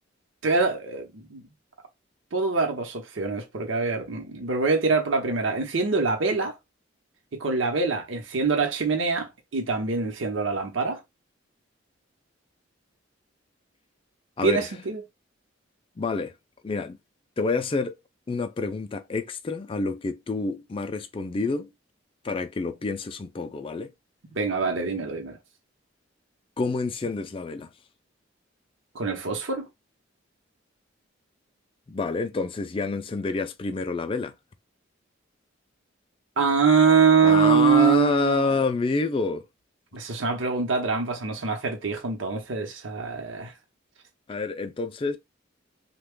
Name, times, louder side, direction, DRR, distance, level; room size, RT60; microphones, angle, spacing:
voice 1, 0.4-1.4 2.3-6.5 7.3-11.0 14.4-15.0 24.3-25.4 28.9-29.7 36.4-38.5 39.9-43.5, right 5 dB, 75° right, 0.8 m, -24 dB
voice 2, 16.0-16.3 16.6-17.0 17.4-17.9 18.3-21.7 22.2-23.9 26.6-27.7 31.9-34.3 37.2-39.4 44.3-45.2, left 3 dB, 25° left, 0.4 m, -28 dB
3.3 x 2.2 x 3.6 m
head